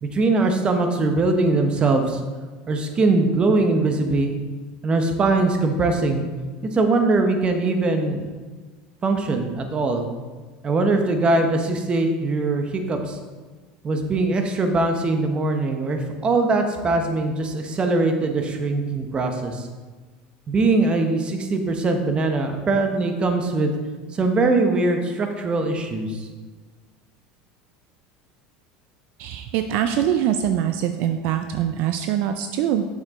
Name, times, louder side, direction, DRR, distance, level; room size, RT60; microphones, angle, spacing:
voice 1, 0.0-2.2 2.7-4.3 4.8-6.2 6.6-8.3 9.0-10.1 10.6-13.2 13.8-19.7 20.5-23.7 24.1-26.3, right 3 dB, 30° right, 5 dB, 1.1 m, -21 dB
voice 2, 29.2-32.9, right 10 dB, 65° right, 8 dB, 0.5 m, -23 dB
8.1 x 6.5 x 3.7 m, 1.4 s
supercardioid pair, 110°, 4 cm